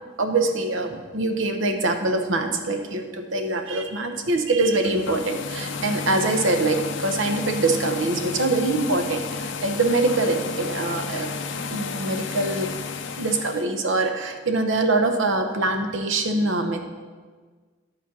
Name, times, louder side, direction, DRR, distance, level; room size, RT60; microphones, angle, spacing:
voice 1, 0.2-11.3 11.7-12.7 13.2-16.8, right 2 dB, 70° right, 6 dB, 0.9 m, -24 dB
sound 1, 4.7-13.6, left 5 dB, 65° left, 0.6 m, -32 dB
11.0 x 4.4 x 6.0 m, 1.5 s
head